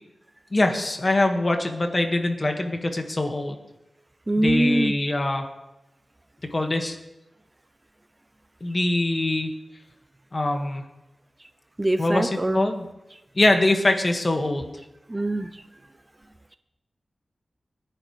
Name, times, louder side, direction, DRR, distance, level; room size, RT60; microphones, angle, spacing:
voice 1, 0.5-3.6 4.4-5.5 6.5-7.0 8.6-9.5 10.3-10.8 12.0-12.9 13.4-14.7, left 2 dB, 35° left, 4 dB, 1.8 m, -23 dB
voice 2, 4.3-4.9 11.8-12.7 15.1-15.6, right 1 dB, 20° right, 10 dB, 0.5 m, -23 dB
28.0 x 10.5 x 3.3 m, 0.99 s
wide cardioid pair, 110°, 0 cm